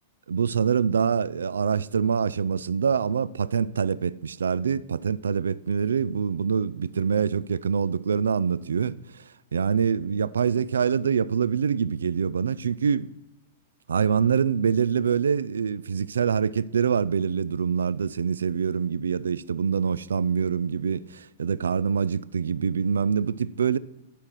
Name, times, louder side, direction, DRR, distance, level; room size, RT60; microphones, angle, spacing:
voice 1, 0.3-9.2 9.5-13.1 13.9-23.8, right 6 dB, 80° right, 0.3 m, -25 dB
11.5 x 4.7 x 5.7 m
hypercardioid pair, 110°, 0 cm